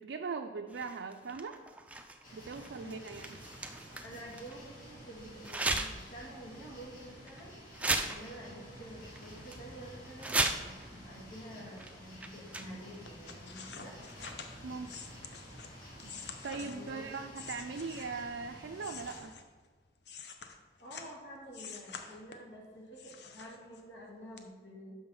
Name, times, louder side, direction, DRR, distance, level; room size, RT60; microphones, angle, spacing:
voice 1, 0.0-1.5 2.3-3.4 14.6-14.9 16.0-16.1 16.4-19.3, right 4 dB, 75° right, 4 dB, 0.4 m, -40 dB
sound 1, 0.7-4.6 5.4-6.1 6.5-6.7 7.3-7.4 7.7-8.8 9.2-9.6 10.0-10.9 11.8-11.9 12.2-13.0 14.0-14.6, right 2 dB, 5° right, 0.4 m, -36 dB
sound 2, 2.2-19.2, equal, 45° left, 2.3 m, -51 dB
voice 2, 4.0-7.5 8.1-13.9 16.6-17.1 20.8-25.0, equal, 80° left, -3 dB, 2.2 m, -49 dB
sound 3, 13.0-18.3 18.7-21.2 21.5-22.6 23.0-24.0 24.4-24.5, left 6 dB, 60° left, 0.7 m, -48 dB
6.5 x 5.6 x 5.6 m, 1.5 s
head